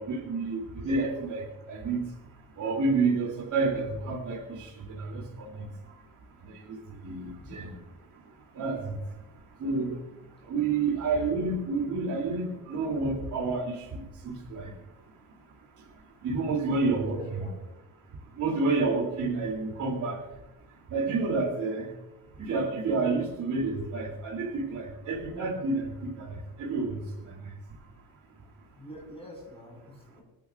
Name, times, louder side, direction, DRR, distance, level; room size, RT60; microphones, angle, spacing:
voice 1, 0.0-2.0 2.6-5.9 6.4-7.8 8.5-9.0 9.6-10.0 10.4-14.7 16.2-17.5 18.4-20.2 20.9-21.9 22.4-27.5, right 3 dB, 55° right, -1 dB, 3.1 m, -30 dB
voice 2, 7.2-7.6 17.0-17.5 28.8-30.2, equal, 15° left, -1 dB, 6.0 m, -45 dB
26.0 x 11.0 x 2.5 m, 0.98 s
cardioid pair, 175°, 35 cm